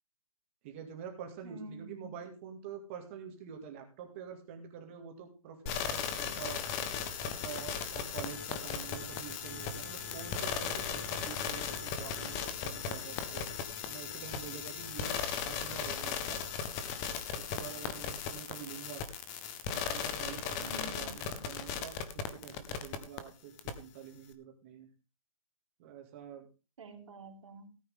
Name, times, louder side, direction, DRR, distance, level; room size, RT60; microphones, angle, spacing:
voice 1, 0.6-6.6 7.2-13.5 13.9-16.4 17.1-19.0 19.7-22.0 22.3-24.9 25.8-26.5, right 8 dB, 20° right, 2.3 m, -47 dB
voice 2, 1.4-2.2 20.6-21.5 26.8-27.7, right 2 dB, 60° right, 3.5 m, -48 dB
sound 1, 5.7-23.2 23.6-23.7, left 7 dB, 10° left, 0.6 m, -37 dB
17.5 x 9.1 x 3.7 m
hypercardioid pair, 180°, 18 cm